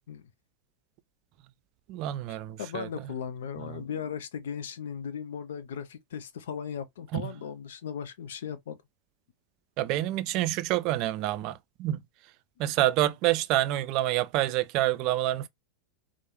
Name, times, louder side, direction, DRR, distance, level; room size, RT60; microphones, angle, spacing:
voice 1, 1.9-2.9 7.1-7.2 9.8-12.0 12.6-15.5, right 14 dB, 40° right, 0.3 m, -27 dB
voice 2, 2.6-8.8, left 7 dB, 60° left, 0.5 m, -37 dB
4.5 x 2.1 x 2.9 m
figure-of-eight pair, 90°, 0 cm